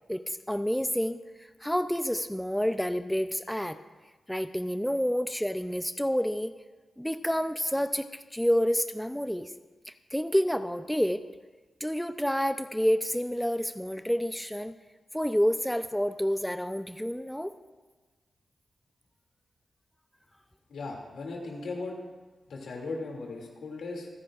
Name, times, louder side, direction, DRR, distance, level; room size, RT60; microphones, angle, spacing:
voice 1, 0.1-3.8 4.3-6.5 7.0-9.5 9.9-11.2 11.8-14.8 15.1-17.5, equal, 5° left, 9 dB, 0.6 m, -29 dB
voice 2, 20.7-22.0 22.5-24.1, left 3 dB, 80° left, 0 dB, 2.6 m, -37 dB
27.0 x 10.5 x 2.5 m, 1.3 s
cardioid pair, 60°, 0 cm